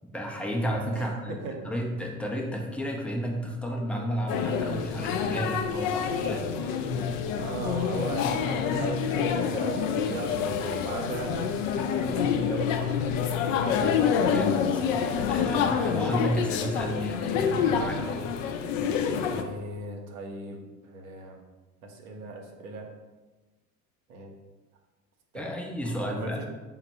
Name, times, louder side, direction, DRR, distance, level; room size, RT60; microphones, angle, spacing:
voice 1, 0.1-1.4 1.6-6.7 13.7-18.2 25.3-26.4, equal, 5° left, -1 dB, 0.4 m, -32 dB
voice 2, 1.4-1.7 7.3-13.9 19.3-21.4 21.8-22.9 24.1-24.3 25.3-26.4, right 2 dB, 70° right, 2 dB, 0.7 m, -38 dB
sound 1, 4.3-19.4, left 7 dB, 60° left, 0.5 m, -27 dB
4.2 x 2.1 x 4.1 m, 1.2 s
figure-of-eight pair, 70°, 44 cm